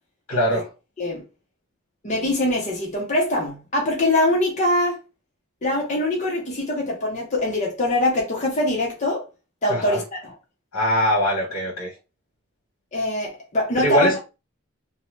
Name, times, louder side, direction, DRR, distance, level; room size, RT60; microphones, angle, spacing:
voice 1, 0.3-0.7 9.7-10.0 10.7-11.9 13.8-14.2, equal, 80° left, 0.9 m, -22 dB
voice 2, 2.0-5.0 5.6-9.2 9.6-10.3 12.9-14.1, left 1 dB, 35° left, 0.7 m, -23 dB
2.6 x 2.1 x 3.0 m
head